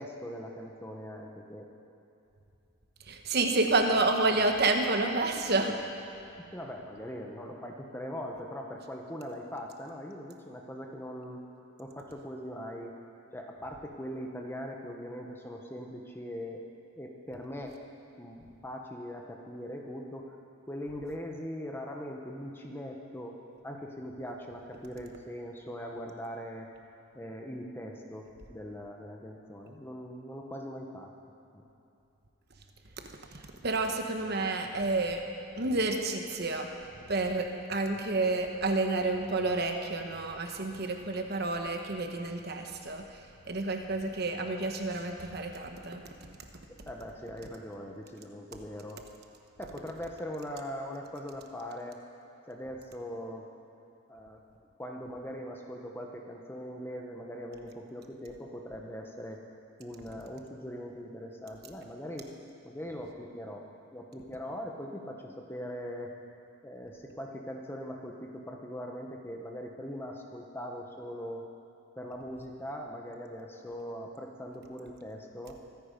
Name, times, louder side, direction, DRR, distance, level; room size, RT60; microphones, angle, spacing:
voice 1, 0.0-1.7 6.4-11.4 11.8-12.9 13.3-16.6 17.0-17.8 18.2-20.4 20.7-23.3 23.6-26.7 27.1-31.1 31.5-31.6 46.8-49.0 49.6-52.0 52.5-53.5 54.1-54.4 54.8-59.4 59.8-62.4 62.6-63.7 63.9-66.1 66.6-71.5 72.0-75.5, equal, 10° left, 1 dB, 1.0 m, -41 dB
voice 2, 3.1-5.8 33.3-35.2 35.5-36.7 37.1-46.0, right 2 dB, 50° right, 4 dB, 1.2 m, -29 dB
24.0 x 9.4 x 5.3 m, 2.8 s
head